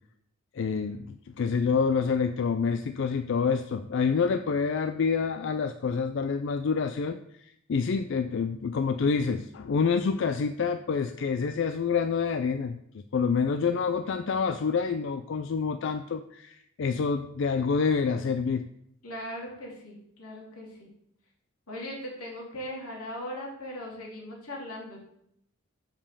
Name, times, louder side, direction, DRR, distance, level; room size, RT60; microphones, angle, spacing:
voice 1, 0.5-12.8 13.1-18.6, left 5 dB, 55° left, 10 dB, 0.3 m, -27 dB
voice 2, 19.0-20.9 21.7-25.0, left 1 dB, 85° left, -2 dB, 2.8 m, -39 dB
7.3 x 5.3 x 6.7 m, 0.75 s
head